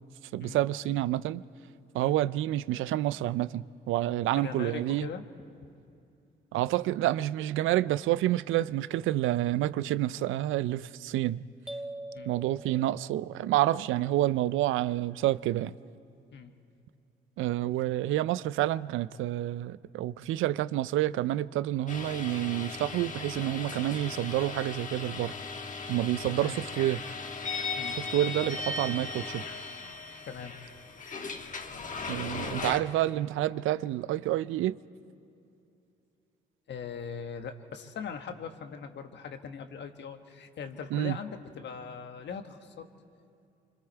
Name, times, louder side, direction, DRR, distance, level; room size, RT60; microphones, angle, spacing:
voice 1, 0.3-1.4 1.9-5.1 6.5-11.4 12.3-15.7 17.4-25.3 25.9-27.0 27.9-29.4 32.1-34.8 40.9-41.2, right 14 dB, 85° right, 0.5 m, -28 dB
voice 2, 4.3-5.2 5.6-5.7 12.1-12.3 16.3-16.5 26.2-26.6 27.8-28.0 30.3-30.6 36.7-42.8, left 6 dB, 65° left, 1.4 m, -40 dB
sound 1, 11.7-13.6, right 1 dB, 5° right, 1.3 m, -43 dB
sound 2, 21.9-32.8, left 4 dB, 40° left, 1.4 m, -37 dB
26.0 x 25.0 x 4.6 m
cardioid pair, 90°, 20 cm